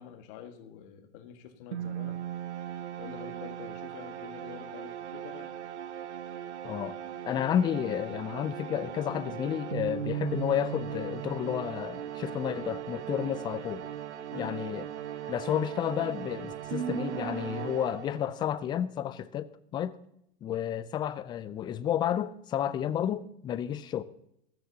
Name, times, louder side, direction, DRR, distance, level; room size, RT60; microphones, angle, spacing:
voice 1, 0.0-2.2 3.0-5.5 14.3-14.6, left 9 dB, 45° left, 1.7 m, -46 dB
sound 1, 1.7-18.5, right 10 dB, 75° right, 1.0 m, -38 dB
voice 2, 6.6-7.0 7.2-13.8 14.4-14.9 15.3-20.0 20.4-24.0, left 10 dB, 15° left, 0.4 m, -31 dB
14.5 x 13.5 x 2.8 m
hypercardioid pair, 115°, 35 cm